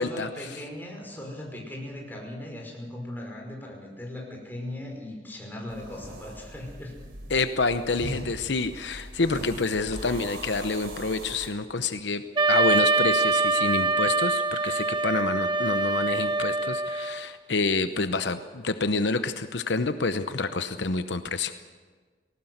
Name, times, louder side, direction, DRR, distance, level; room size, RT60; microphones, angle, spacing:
voice 1, 0.0-7.0, left 1 dB, 10° left, 0 dB, 5.4 m, -38 dB
sound 1, 5.7-11.5, right 1 dB, 65° right, 3.9 m, -40 dB
voice 2, 7.3-12.2 12.5-21.5, left 3 dB, 75° left, 10 dB, 0.9 m, -28 dB
Wind instrument woodwind instrument, 12.4-17.2, right 3 dB, 25° right, 1.2 m, -24 dB
19.5 x 18.0 x 8.0 m, 1.5 s
head